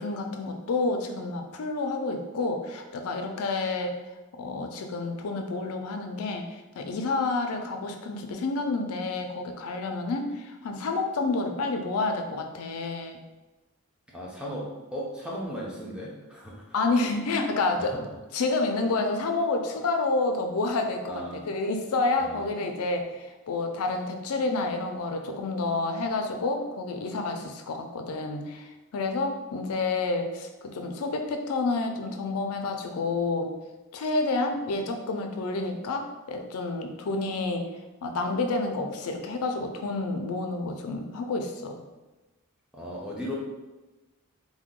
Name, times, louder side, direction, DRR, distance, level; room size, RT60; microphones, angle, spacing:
voice 1, 0.0-4.0 4.4-6.5 6.8-13.2 16.7-17.9 18.3-21.1 21.5-33.5 33.9-37.7 38.0-41.7, left 3 dB, 75° left, 4 dB, 0.4 m, -29 dB
voice 2, 14.1-16.6 17.8-18.0 21.1-21.4 22.2-22.5 42.7-43.3, equal, 5° right, -5 dB, 0.5 m, -36 dB
2.8 x 2.1 x 3.6 m, 1.1 s
head